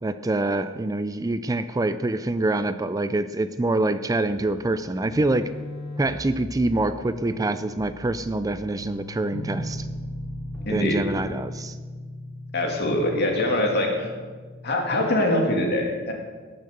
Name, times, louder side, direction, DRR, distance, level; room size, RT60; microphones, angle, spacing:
voice 1, 0.0-5.5 6.0-9.9 10.7-11.8, right 2 dB, 15° right, 12 dB, 0.4 m, -25 dB
sound 1, 4.2-11.4, left 1 dB, 10° left, 3.4 m, -41 dB
sound 2, 9.3-14.9, left 1 dB, 80° left, 1.0 m, -37 dB
voice 2, 10.7-11.0 12.5-14.1 14.6-16.1, left 1 dB, 55° left, 1 dB, 2.5 m, -23 dB
18.5 x 6.4 x 6.8 m, 1.4 s
head